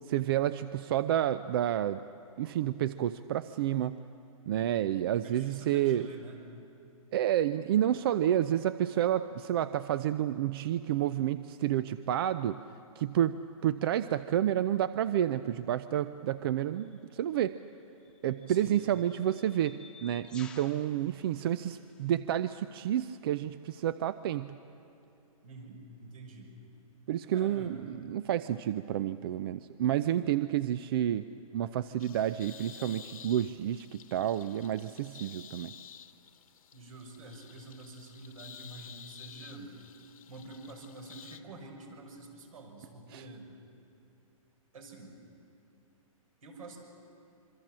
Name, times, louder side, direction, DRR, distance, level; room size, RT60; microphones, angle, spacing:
voice 1, 0.1-2.0 2.4-4.0 4.5-6.1 7.1-12.6 13.0-17.6 18.2-24.5 27.1-31.3 31.5-35.7 43.1-43.2, right 11 dB, 40° right, 14 dB, 0.5 m, -30 dB
voice 2, 5.2-6.4 18.5-18.8 25.4-26.5 27.3-27.8 36.7-39.7 40.3-43.5 44.7-45.2 46.4-46.8, right 2 dB, 75° right, 3 dB, 6.0 m, -47 dB
sound 1, 16.8-17.0 18.0-22.2, left 4 dB, 5° left, 1.2 m, -55 dB
sound 2, 32.0-41.4, left 8 dB, 75° left, 1.3 m, -52 dB
26.5 x 24.0 x 7.5 m, 2.6 s
hypercardioid pair, 155°, 18 cm